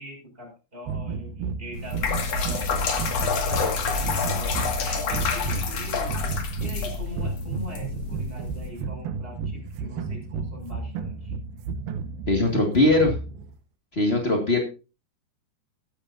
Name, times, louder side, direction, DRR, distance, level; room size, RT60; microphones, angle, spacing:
voice 1, 0.0-4.5 4.8-11.3, equal, 10° right, -1 dB, 6.6 m, -42 dB
sound 1, 0.9-13.5, right 5 dB, 70° right, 2.5 m, -33 dB
sound 2, 1.7-8.7, left 5 dB, 45° left, 2.5 m, -28 dB
voice 2, 12.3-13.2 13.9-14.6, left 2 dB, 85° left, 3 dB, 0.5 m, -20 dB
15.0 x 12.0 x 2.7 m, 0.31 s
omnidirectional pair, 5.0 m